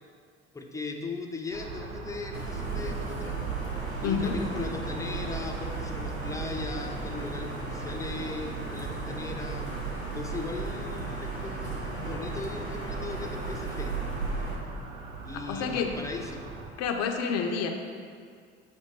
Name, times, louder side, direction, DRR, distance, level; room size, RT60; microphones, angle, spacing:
voice 1, 0.5-3.4 4.0-9.7 10.1-13.9 15.2-16.5, left 3 dB, 10° left, 2 dB, 0.6 m, -38 dB
sound 1, 1.5-16.7, right 3 dB, 60° right, 0.8 m, -42 dB
sound 2, 2.3-14.6, right 3 dB, 85° right, 0.9 m, -35 dB
voice 2, 4.0-4.4 15.3-15.9 16.8-17.7, left 6 dB, 50° left, 3 dB, 0.7 m, -29 dB
7.7 x 2.9 x 4.4 m, 2.1 s
figure-of-eight pair, 60°, 33 cm